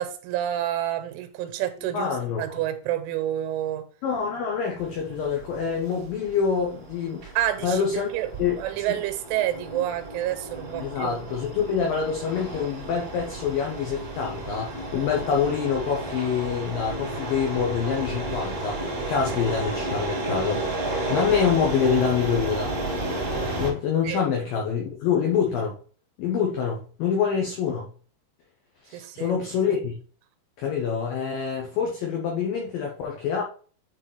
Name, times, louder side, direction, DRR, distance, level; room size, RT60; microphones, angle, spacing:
voice 1, 0.0-2.1 2.4-3.9 7.4-8.3 8.6-11.2 24.0-24.2 28.9-29.3, right 12 dB, 85° right, 3.3 m, -28 dB
voice 2, 1.9-2.6 4.0-7.3 7.6-8.1 8.4-8.6 10.8-20.6 21.1-22.7 23.6-25.8 26.2-27.9 28.8-29.9 30.6-33.4, left 7 dB, 85° left, 2.0 m, -26 dB
sound 1, 4.8-23.7, right 2 dB, 30° right, 2.8 m, -32 dB
9.7 x 4.1 x 3.3 m
omnidirectional pair, 5.5 m